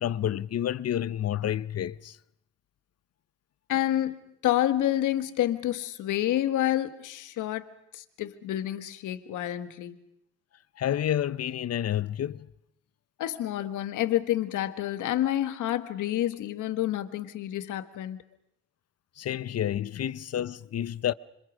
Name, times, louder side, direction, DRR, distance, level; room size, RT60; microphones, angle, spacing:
voice 1, 0.0-2.2 10.8-12.5 19.2-21.1, left 10 dB, 55° left, 0.9 m, -29 dB
voice 2, 3.7-7.7 7.9-10.0 13.2-18.2, left 13 dB, 80° left, 1.7 m, -28 dB
26.5 x 26.0 x 6.3 m
cardioid pair, 90°, 30 cm